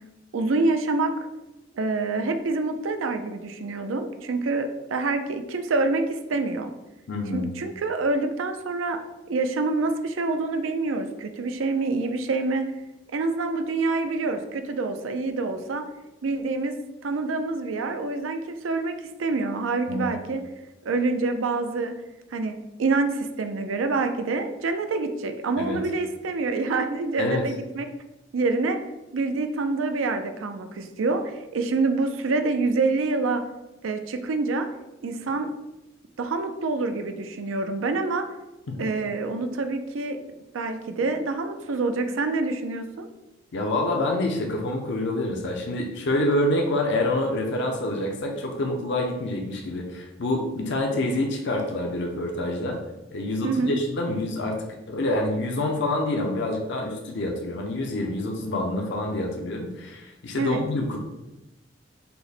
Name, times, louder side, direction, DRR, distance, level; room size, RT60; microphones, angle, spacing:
voice 1, 0.3-1.1 1.7-6.7 7.3-9.0 9.3-12.7 13.1-15.8 16.2-20.4 20.8-21.9 22.3-27.9 28.3-28.8 29.1-33.4 33.8-34.7 35.0-35.5 36.2-38.3 38.8-40.2 40.5-43.1 53.4-53.8 60.4-60.6, right 3 dB, 90° right, 7 dB, 0.5 m, -26 dB
voice 2, 7.1-7.5 19.9-20.1 25.6-25.8 27.2-27.4 38.7-38.8 43.5-52.8 53.1-61.0, left 1 dB, 65° left, 1 dB, 0.6 m, -27 dB
5.6 x 2.1 x 4.0 m, 0.98 s
head